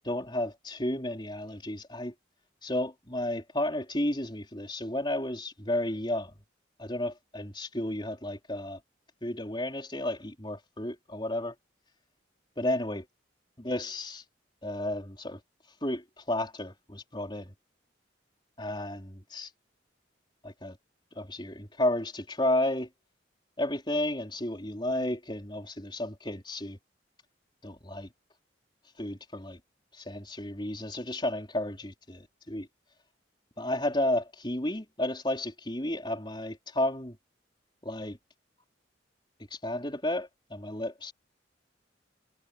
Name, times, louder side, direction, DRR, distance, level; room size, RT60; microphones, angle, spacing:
voice 1, 0.1-2.1 2.6-6.4 6.8-8.8 9.2-11.5 12.6-13.0 13.6-14.2 14.6-15.4 15.8-17.5 18.6-19.5 20.4-20.8 21.2-22.9 23.6-26.8 27.6-28.1 29.0-29.6 29.9-32.7 33.6-37.2 37.8-38.2 39.5-41.1, left 1 dB, 25° left, 4.1 m, -32 dB
head